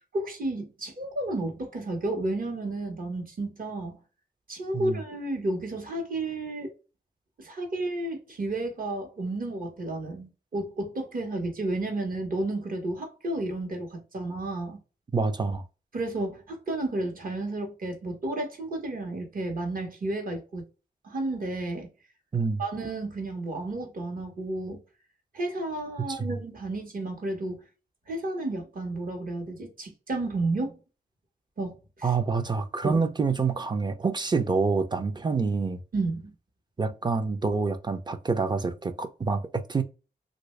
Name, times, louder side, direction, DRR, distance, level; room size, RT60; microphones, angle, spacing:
voice 1, 0.1-4.0 4.5-6.7 7.4-14.8 15.9-20.6 21.0-21.9 22.6-24.8 25.3-27.6 28.1-30.7 31.6-32.1 32.8-33.0 35.9-36.3, right 2 dB, 60° right, 1.2 m, -32 dB
voice 2, 15.1-15.6 22.3-22.6 26.1-26.3 32.0-35.8 36.8-39.8, right 4 dB, 25° right, 0.4 m, -27 dB
3.1 x 2.6 x 3.1 m
wide cardioid pair, 130°, 17 cm